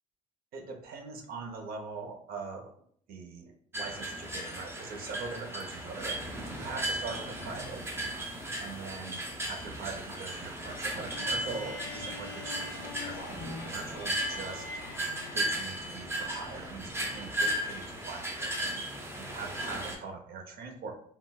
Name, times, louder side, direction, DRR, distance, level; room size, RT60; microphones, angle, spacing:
voice 1, 0.5-2.7 3.1-7.8 8.6-14.7 15.3-18.8 19.2-21.0, right 4 dB, 60° right, 4 dB, 0.6 m, -42 dB
sound 1, 3.7-19.9, right 1 dB, 15° right, 0.6 m, -36 dB
sound 2, 11.0-16.3, left 4 dB, 90° left, 0.5 m, -45 dB
3.6 x 2.2 x 2.3 m, 0.63 s
cardioid pair, 110°, 17 cm